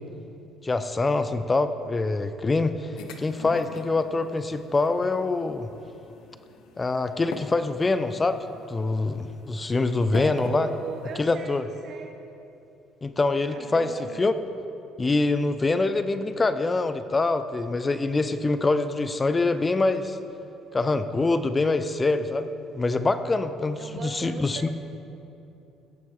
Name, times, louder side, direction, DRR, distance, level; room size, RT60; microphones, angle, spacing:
voice 1, 0.6-5.7 6.8-10.7 11.2-11.7 13.0-13.9 14.2-14.3 15.0-20.2 20.7-22.5 22.7-24.7, left 3 dB, 20° left, 11 dB, 0.5 m, -25 dB
sound 1, 3.0-11.2, left 5 dB, 80° left, 0.9 m, -44 dB
voice 2, 10.1-11.6 11.8-12.1 13.5-14.2 23.8-24.7, right 5 dB, 50° right, 3 dB, 0.7 m, -37 dB
17.0 x 9.4 x 3.7 m, 2.8 s
cardioid pair, 130°, 0 cm